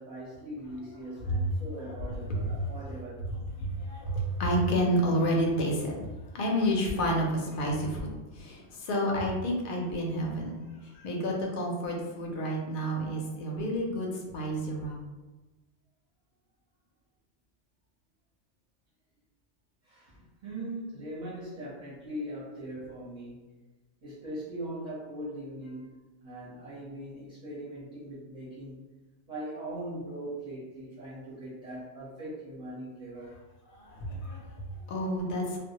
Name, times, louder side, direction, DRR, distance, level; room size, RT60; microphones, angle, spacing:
voice 1, 0.0-3.2 19.8-23.6 24.0-28.8 29.3-33.4, right 1 dB, 40° right, -9 dB, 0.7 m, -40 dB
voice 2, 2.3-2.7 3.3-15.0 33.7-35.6, equal, 60° left, -1 dB, 0.6 m, -30 dB
2.1 x 2.0 x 2.8 m, 1.2 s
omnidirectional pair, 1.2 m